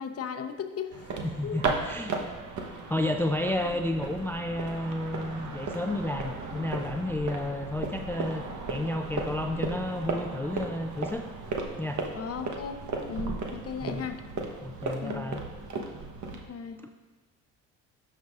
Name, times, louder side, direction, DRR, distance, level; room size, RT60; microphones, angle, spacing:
voice 1, 0.0-1.1 1.4-1.6 12.2-14.2 15.0-15.2 16.3-16.8, left 6 dB, 40° left, 7 dB, 0.8 m, -36 dB
sound 1, 0.9-16.5, right 3 dB, 50° right, 1.1 m, -35 dB
voice 2, 1.2-2.3 2.9-11.3 11.8-12.0 13.8-14.1 14.6-15.4 16.8-16.9, left 1 dB, 5° left, 5 dB, 0.4 m, -31 dB
13.0 x 5.5 x 2.5 m, 1.3 s
supercardioid pair, 65°, 37 cm